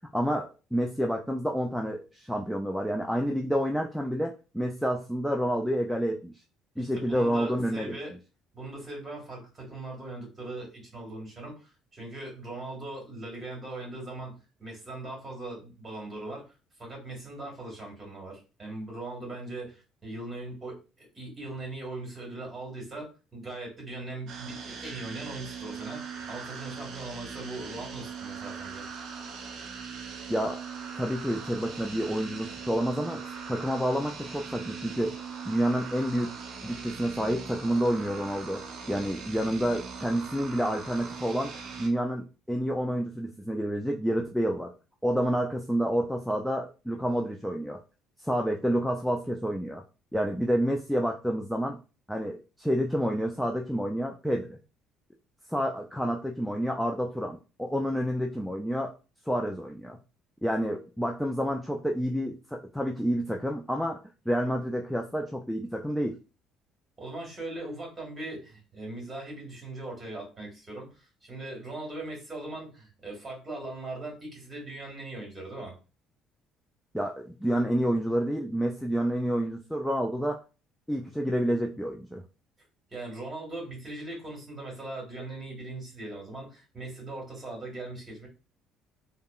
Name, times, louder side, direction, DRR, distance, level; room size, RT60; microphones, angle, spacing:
voice 1, 0.1-6.3 6.8-8.0 30.3-30.6 31.0-35.2 35.5-41.5 41.8-44.7 45.0-47.8 48.2-49.8 50.1-51.8 52.1-54.6 55.5-58.9 59.3-60.0 60.4-64.0 64.3-66.2 76.9-80.4 80.9-82.2, equal, ahead, 1 dB, 0.3 m, -29 dB
voice 2, 6.7-8.1 8.5-28.8 67.0-75.8 82.9-88.3, right 2 dB, 20° right, -1 dB, 1.6 m, -40 dB
sound 1, 24.3-41.9, right 5 dB, 55° right, 0.7 m, -40 dB
3.4 x 2.1 x 2.3 m, 0.32 s
cardioid pair, 130°, 0 cm